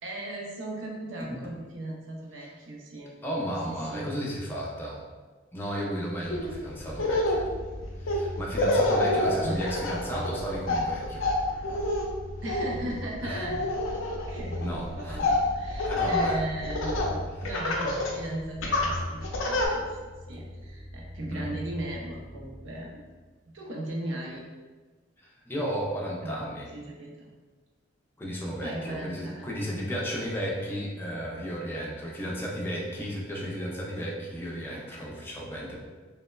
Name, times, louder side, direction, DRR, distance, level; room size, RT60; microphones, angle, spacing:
voice 1, 0.0-3.1 3.7-4.1 9.4-9.6 12.4-13.6 14.3-19.9 20.3-23.0 23.5-24.5 26.2-26.5 26.7-27.3 28.6-29.7, right 1 dB, 70° right, -1 dB, 0.5 m, -37 dB
voice 2, 3.2-5.0 5.5-7.4 8.0-11.3 13.2-13.4 14.6-15.3 15.9-16.4 21.3-21.5 25.2-26.7 28.2-35.7, equal, 10° left, -4 dB, 0.4 m, -34 dB
Laughter, 6.3-6.5 6.9-17.2 17.5-18.2 18.6-19.7, left 1 dB, 80° left, 0.4 m, -28 dB
sound 1, 6.4-23.2, left 1 dB, 15° right, 0.7 m, -42 dB
3.0 x 2.0 x 2.2 m, 1.3 s
head